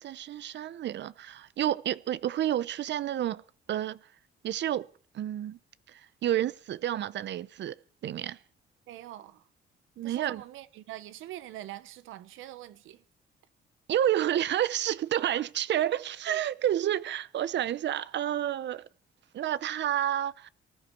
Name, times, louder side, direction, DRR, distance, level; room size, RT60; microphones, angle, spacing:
voice 1, 0.0-3.4 3.7-4.0 4.4-4.9 5.1-5.6 5.9-7.8 8.0-8.4 10.0-10.4 13.9-18.8 19.3-20.5, right 11 dB, 65° right, 0.7 m, -30 dB
voice 2, 8.9-9.5 10.0-13.0, right 14 dB, 90° right, 1.0 m, -44 dB
19.0 x 13.0 x 4.6 m
cardioid pair, 90°, 20 cm